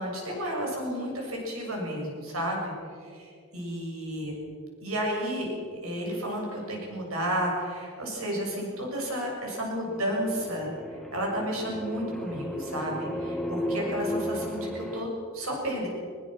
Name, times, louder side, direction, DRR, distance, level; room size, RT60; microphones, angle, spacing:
voice 1, 0.0-2.7 3.0-4.3 4.8-10.7 11.1-15.9, equal, 85° right, -1 dB, 7.1 m, -32 dB
sound 1, 9.9-15.1, left 1 dB, ahead, 1.3 m, -34 dB
21.0 x 20.5 x 6.4 m, 2.3 s
head